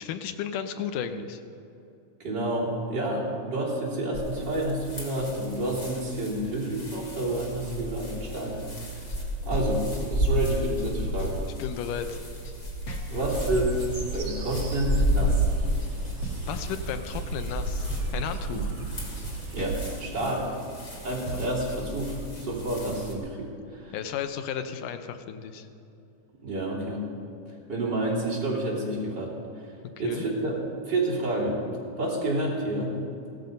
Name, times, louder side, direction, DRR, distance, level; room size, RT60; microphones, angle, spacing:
voice 1, 0.0-1.4 11.6-12.2 16.5-18.7 23.9-25.7 30.0-30.2, left 8 dB, 85° left, 9 dB, 2.3 m, -34 dB
voice 2, 2.2-8.6 9.4-11.4 13.1-13.8 14.1-15.5 18.5-18.6 19.5-20.5 21.0-23.9 26.4-27.0 27.5-29.3 30.0-31.7 32.0-33.0, right 1 dB, 35° right, -6 dB, 3.6 m, -29 dB
sound 1, 4.1-23.1, equal, 25° left, 2.6 m, -32 dB
sound 2, 9.1-22.1, right 2 dB, 55° left, 1.4 m, -41 dB
sound 3, 13.3-19.9, right 4 dB, 80° right, 5.3 m, -36 dB
17.0 x 13.5 x 5.3 m, 2.8 s
omnidirectional pair, 3.8 m